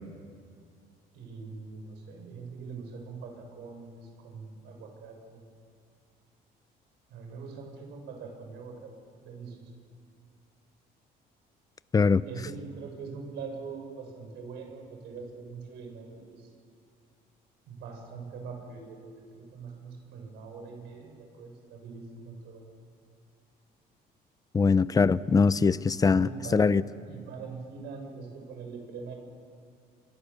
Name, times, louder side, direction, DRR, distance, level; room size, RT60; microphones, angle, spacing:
voice 1, 1.1-5.4 7.1-8.9 9.2-9.7 12.2-16.5 17.7-22.6 26.0-26.8 27.1-29.1, right 5 dB, 85° right, 2 dB, 6.3 m, -43 dB
voice 2, 24.5-26.8, left 5 dB, 20° left, 17 dB, 0.6 m, -22 dB
26.5 x 24.0 x 7.0 m, 2.4 s
cardioid pair, 110°, 17 cm